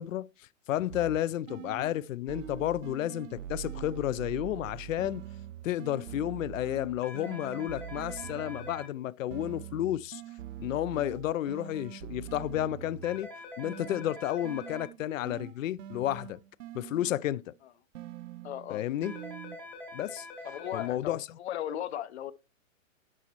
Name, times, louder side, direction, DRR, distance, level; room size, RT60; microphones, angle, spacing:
voice 1, 0.0-5.2 5.6-10.2 10.6-13.3 13.6-16.4 16.7-17.5 18.7-19.1 19.9-20.3 20.7-21.3, left 13 dB, 75° left, 0.5 m, -32 dB
sound 1, 0.9-2.0 2.3-8.9 9.3-13.3 13.6-17.3 17.9-19.6, right 11 dB, 70° right, 0.6 m, -44 dB
sound 2, 7.0-8.9 13.0-14.9 19.0-20.9, left 2 dB, 5° left, 0.6 m, -45 dB
voice 2, 18.4-18.8 20.4-22.3, left 11 dB, 55° left, 0.8 m, -37 dB
11.0 x 4.1 x 3.0 m
hypercardioid pair, 155°, 40 cm